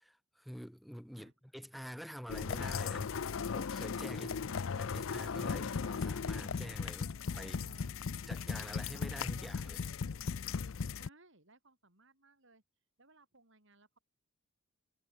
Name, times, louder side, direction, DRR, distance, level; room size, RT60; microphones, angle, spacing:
voice 1, 0.0-3.1 3.5-4.3 4.7-7.6 8.3-9.9, equal, ahead, 1.9 m, -47 dB
sound 1, 2.3-11.1, left 5 dB, 65° left, 0.5 m, -37 dB
voice 2, 4.2-4.8 7.4-7.9 10.9-12.6 13.0-14.0, right 1 dB, 55° right, 7.5 m, -61 dB
head